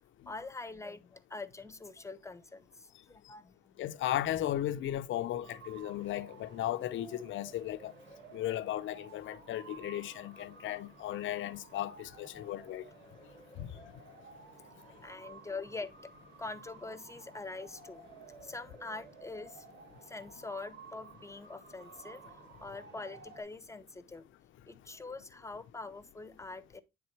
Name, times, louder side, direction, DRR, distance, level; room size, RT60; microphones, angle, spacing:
voice 1, 0.3-3.9 12.3-12.6 15.0-16.1 16.4-18.0 18.4-19.6 20.0-22.2 22.6-24.3 24.7-26.8, left 3 dB, 15° left, 0.9 m, -44 dB
voice 2, 3.8-7.9 8.3-12.9 13.6-13.7, left 13 dB, 75° left, 0.6 m, -36 dB
sound 1, 5.4-23.4, right 4 dB, 60° right, 3.0 m, -54 dB
9.5 x 3.7 x 4.5 m
cardioid pair, 90°, 20 cm